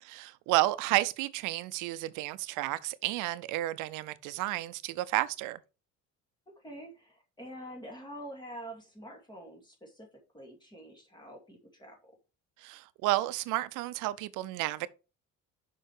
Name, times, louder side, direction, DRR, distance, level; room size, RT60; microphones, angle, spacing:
voice 1, 0.0-5.6 12.6-14.9, right 17 dB, 85° right, 0.6 m, -31 dB
voice 2, 6.5-12.1, right 1 dB, 15° left, 2.5 m, -46 dB
6.5 x 5.5 x 4.7 m
cardioid pair, 145°, 30 cm